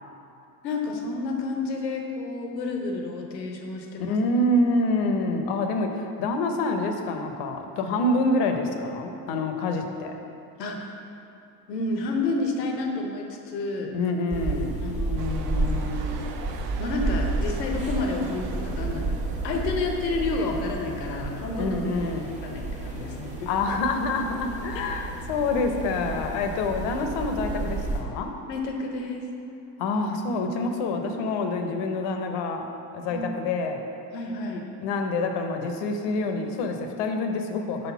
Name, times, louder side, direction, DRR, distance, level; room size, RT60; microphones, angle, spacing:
voice 1, 0.6-4.2 10.6-10.9 11.7-13.9 14.8-16.2 16.8-21.8 22.0-22.1 22.4-23.5 28.5-29.2 33.1-33.3 34.1-34.6, left 3 dB, 85° left, 2 dB, 0.9 m, -30 dB
voice 2, 4.0-10.2 13.9-14.8 21.6-22.3 23.5-28.3 29.8-32.6 32.9-33.8 34.8-37.9, left 2 dB, 55° left, 5 dB, 0.9 m, -26 dB
sound 1, 14.3-28.0, right 2 dB, 15° right, 1.3 m, -31 dB
sound 2, 15.2-20.3, right 6 dB, 75° right, 0.7 m, -42 dB
5.2 x 4.2 x 5.7 m, 2.8 s
hypercardioid pair, 80°, 49 cm